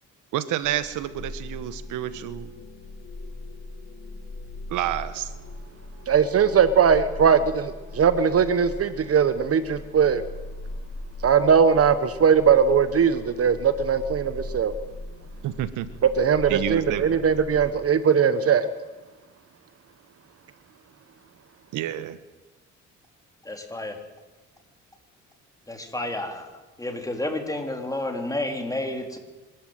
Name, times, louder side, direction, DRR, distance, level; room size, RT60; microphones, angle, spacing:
voice 1, 0.3-2.5 4.7-5.3 15.4-15.9 16.5-17.2 21.7-22.2, right 12 dB, 90° right, 13 dB, 1.2 m, -29 dB
sound 1, 0.6-17.7, left 2 dB, 45° left, 2.8 m, -39 dB
voice 2, 6.1-10.2 11.2-14.7 16.2-18.7, right 7 dB, 50° right, 12 dB, 1.2 m, -20 dB
voice 3, 23.4-24.0 25.7-26.5 26.8-29.2, left 1 dB, 10° left, 4 dB, 4.0 m, -30 dB
24.5 x 14.0 x 9.2 m, 1.2 s
cardioid pair, 90°, 30 cm